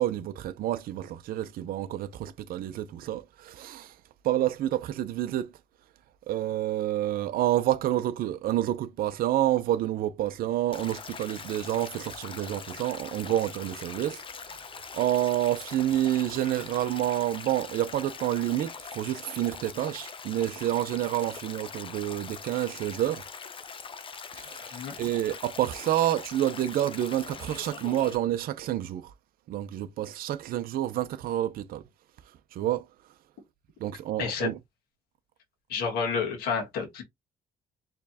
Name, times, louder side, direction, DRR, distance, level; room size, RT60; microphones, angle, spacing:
voice 1, 0.0-4.0 4.2-5.5 6.3-14.6 14.9-23.3 24.3-29.1 29.5-31.8 32.5-32.9 33.8-34.6, right 13 dB, 70° right, 0.6 m, -29 dB
Stream, 10.7-28.2, left 5 dB, 35° left, 0.7 m, -42 dB
voice 2, 34.2-34.5 35.7-37.0, left 5 dB, 90° left, 1.8 m, -29 dB
4.4 x 3.1 x 2.8 m
cardioid pair, 100°, 16 cm